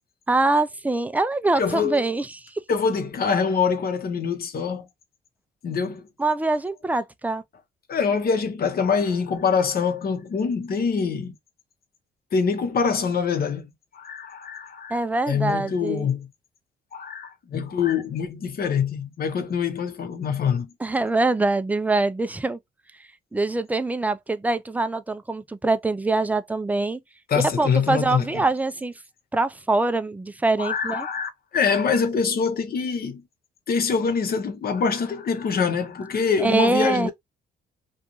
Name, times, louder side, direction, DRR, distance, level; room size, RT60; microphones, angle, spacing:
voice 1, 0.3-2.3 6.2-7.4 14.9-16.1 20.8-22.6 23.3-27.0 27.4-28.9 29.3-31.1 36.4-37.1, right 2 dB, 10° right, 0.3 m, -24 dB
voice 2, 1.6-2.1 2.7-4.9 5.6-6.1 7.9-11.3 12.3-13.7 13.9-15.0 15.3-16.3 16.9-20.7 27.3-28.3 30.6-33.2 33.7-37.1, left 6 dB, 50° left, 0.8 m, -24 dB
2.5 x 2.3 x 2.8 m
cardioid pair, 90°, 20 cm